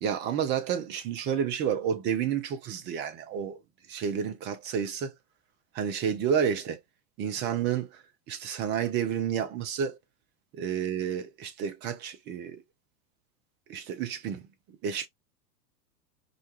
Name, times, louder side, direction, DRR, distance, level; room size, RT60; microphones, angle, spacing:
voice 1, 0.0-3.6 3.9-5.1 5.7-6.8 7.2-10.0 10.5-12.6 13.7-15.1, right 8 dB, 25° right, 0.5 m, -30 dB
2.5 x 2.2 x 2.8 m
figure-of-eight pair, 90°, 47 cm